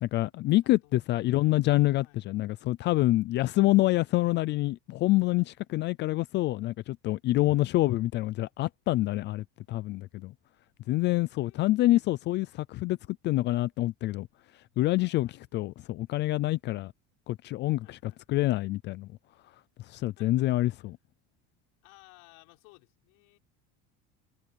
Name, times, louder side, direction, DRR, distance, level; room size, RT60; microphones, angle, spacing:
voice 1, 0.0-10.3 10.9-13.0 13.2-14.3 14.8-16.9 17.3-18.0 18.3-19.1 19.9-21.0, left 17 dB, 35° left, 0.4 m, -26 dB
voice 2, 0.6-1.7 2.0-2.3 5.7-5.9 11.4-12.3 15.2-15.5 17.8-18.2 19.9-20.9 21.8-23.4, left 28 dB, 75° left, 6.4 m, -60 dB
cardioid pair, 170°, 30 cm